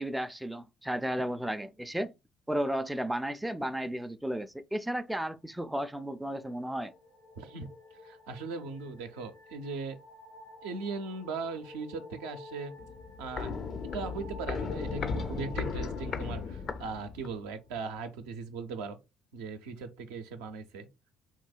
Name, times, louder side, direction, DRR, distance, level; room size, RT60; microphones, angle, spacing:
voice 1, 0.0-2.1 2.5-6.9, right 1 dB, 5° right, 0.4 m, -33 dB
sound 1, 6.0-17.4, left 3 dB, 85° left, 1.5 m, -50 dB
voice 2, 7.4-7.7 8.0-10.0 10.6-12.7 13.2-13.5 13.9-19.0 19.3-20.9, right 4 dB, 75° right, 0.5 m, -39 dB
Walk footsteps, 12.8-17.5 17.8-17.9, left 5 dB, 50° left, 0.5 m, -36 dB
3.7 x 2.7 x 2.3 m
hypercardioid pair, 55°, 0 cm